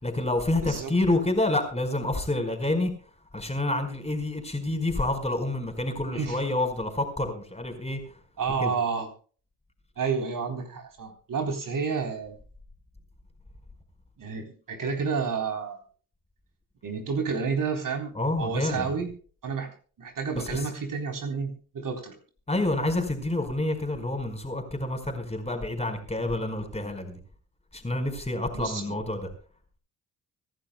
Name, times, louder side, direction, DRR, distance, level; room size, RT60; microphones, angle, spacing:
voice 1, 0.0-2.9 3.3-8.2 8.6-8.7 18.1-18.9 20.3-20.6 22.5-27.2 27.7-29.3, left 2 dB, 15° left, 4.7 m, -28 dB
voice 2, 6.0-6.4 8.4-9.1 10.0-12.4 14.2-15.8 16.8-19.1 19.4-19.7 20.0-22.2 28.5-29.0, right 5 dB, 50° right, 3.8 m, -30 dB
24.5 x 11.5 x 2.3 m
hypercardioid pair, 50°, 41 cm